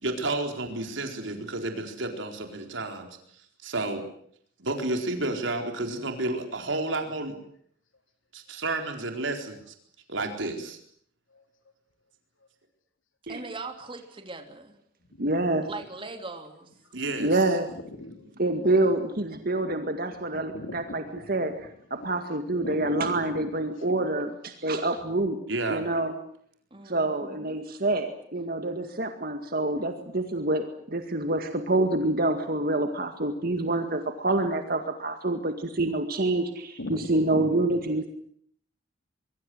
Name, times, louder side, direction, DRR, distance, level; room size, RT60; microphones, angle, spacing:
voice 1, 0.0-3.1 3.6-4.0 4.6-7.3 8.3-9.7 10.1-10.8 16.9-17.3 25.5-25.8, right 2 dB, 75° right, 4 dB, 4.3 m, -31 dB
voice 2, 13.3-14.7 15.6-16.7 26.7-27.6, right 3 dB, 25° right, 6 dB, 3.2 m, -40 dB
voice 3, 15.2-15.7 17.2-17.7 18.4-21.5 22.0-25.4 25.7-26.1 26.9-38.1, right 2 dB, 50° right, 7 dB, 2.0 m, -27 dB
voice 4, 17.7-18.3 20.1-21.7 22.0-23.5 23.8-23.9 24.3-24.4 36.8-37.8, left 1 dB, 80° left, 7 dB, 3.9 m, -40 dB
25.0 x 23.5 x 7.9 m, 0.63 s
head